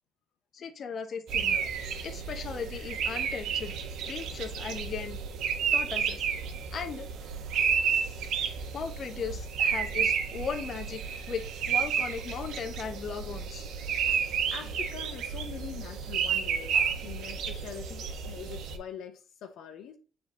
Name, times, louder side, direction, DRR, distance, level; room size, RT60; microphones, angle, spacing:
voice 1, 0.5-1.7 2.0-3.8 4.0-5.2 5.7-6.3 6.7-7.1 8.7-11.0 11.3-13.7 16.7-16.9, left 6 dB, 50° left, 1.1 m, -37 dB
sound 1, 1.3-18.8, right 7 dB, 80° right, 1.2 m, -31 dB
voice 2, 14.5-20.0, left 8 dB, 80° left, 1.0 m, -43 dB
7.8 x 3.9 x 3.9 m
cardioid pair, 105°, 0 cm